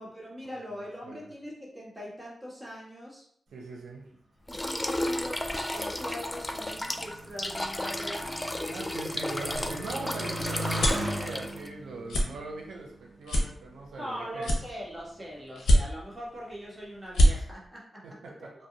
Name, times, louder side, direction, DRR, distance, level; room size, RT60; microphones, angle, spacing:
voice 1, 0.0-3.2 4.5-8.4 14.0-18.0, equal, 10° right, -6 dB, 1.4 m, -41 dB
voice 2, 0.5-1.2 3.5-4.1 8.7-14.5 18.0-18.5, right 3 dB, 90° right, -1 dB, 0.6 m, -41 dB
sound 1, 4.5-11.7, left 1 dB, 20° left, 0.3 m, -33 dB
Motorcycle, 5.1-13.9 14.6-15.2, right 1 dB, 55° right, 1.0 m, -40 dB
sound 2, 9.5-11.1 11.6-11.8 12.1-12.3 12.7-12.9 13.3-14.0 14.4-15.1 15.6-16.2 16.6-16.7 17.0-17.3, equal, 85° left, 0.6 m, -23 dB
2.6 x 2.1 x 3.8 m, 0.68 s
cardioid pair, 55°, 0 cm